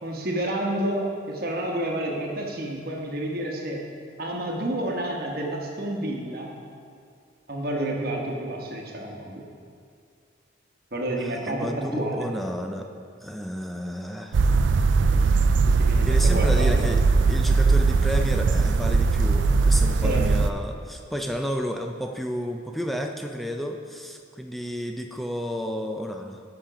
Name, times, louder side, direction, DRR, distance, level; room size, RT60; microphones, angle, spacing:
voice 1, 0.0-3.8 4.2-6.5 7.5-9.4 10.9-12.3 15.4-16.7 20.0-20.3, right 1 dB, 50° right, -1 dB, 1.2 m, -30 dB
voice 2, 11.2-12.9 13.2-14.4 16.0-26.4, equal, ahead, 3 dB, 0.4 m, -31 dB
sound 1, 14.3-20.5, right 4 dB, 75° right, 0.4 m, -20 dB
10.5 x 5.9 x 5.0 m, 2.3 s
head